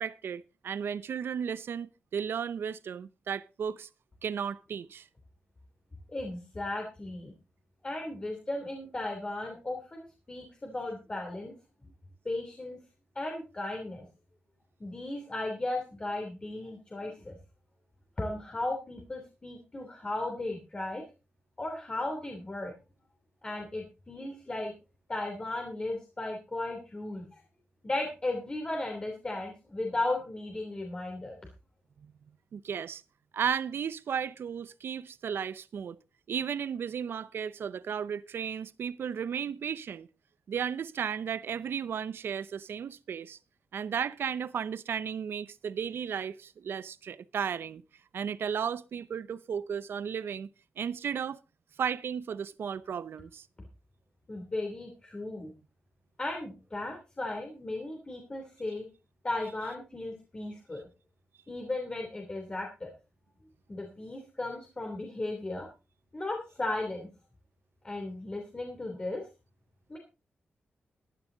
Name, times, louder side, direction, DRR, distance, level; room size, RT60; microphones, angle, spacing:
voice 1, 0.0-3.9 4.2-5.1 32.5-33.0 33.3-36.0 36.3-40.1 40.5-43.4 43.7-47.8 48.1-50.5 50.8-51.4 51.8-53.5, right 7 dB, 70° right, 0.7 m, -34 dB
voice 2, 6.1-7.3 7.8-11.5 11.8-11.9 12.2-12.8 13.1-14.1 14.8-17.4 18.2-21.0 21.6-22.7 23.4-24.7 25.1-27.4 27.8-31.4 54.3-55.5 56.2-58.9 59.2-60.8 61.5-62.9 63.7-65.7 66.1-67.1 67.8-69.2 69.9-70.0, left 2 dB, 25° left, 3.1 m, -36 dB
15.0 x 11.0 x 4.0 m
wide cardioid pair, 130°, 4 cm